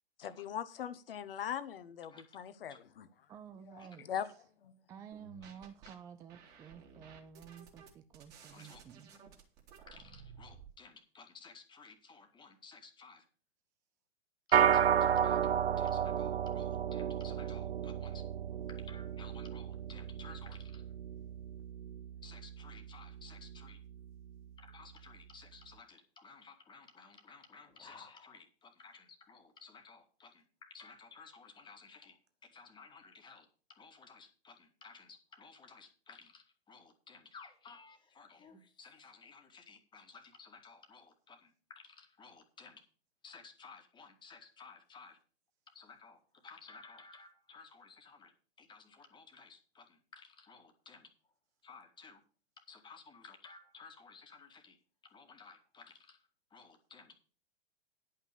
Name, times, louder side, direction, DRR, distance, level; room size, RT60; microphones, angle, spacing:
voice 1, 0.2-3.1 3.7-4.3 4.6-4.8, left 9 dB, 60° left, 1.1 m, -41 dB
voice 2, 3.3-4.1 4.9-9.1, right 8 dB, 10° right, 0.4 m, -52 dB
sound 1, 5.1-5.9 6.3-10.7, right 6 dB, 30° right, 2.7 m, -55 dB
voice 3, 9.9-13.2 14.5-15.5 15.8-18.3 18.7-20.8 22.2-23.8 24.6-32.2 32.5-42.8 43.2-45.2 45.7-48.3 48.6-51.1 51.6-52.2 52.7-54.8 55.0-56.2 56.5-57.1, left 5 dB, 15° left, 1.8 m, -56 dB
sound 2, 14.5-24.0, right 9 dB, 75° right, 0.5 m, -33 dB
10.5 x 5.7 x 6.7 m
figure-of-eight pair, 110°, 32 cm